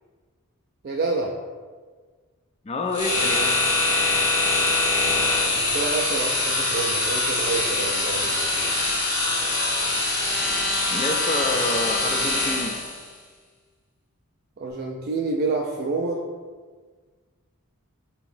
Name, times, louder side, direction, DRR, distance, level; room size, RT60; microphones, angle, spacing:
voice 1, 0.8-1.3 5.6-8.3 14.6-16.2, right 3 dB, 45° right, -1 dB, 0.3 m, -28 dB
voice 2, 2.6-3.7 10.9-12.8, left 2 dB, 25° left, 4 dB, 0.3 m, -28 dB
sound 1, 2.9-13.0, left 2 dB, 50° left, 1.1 m, -23 dB
6.5 x 2.9 x 2.6 m, 1.5 s
head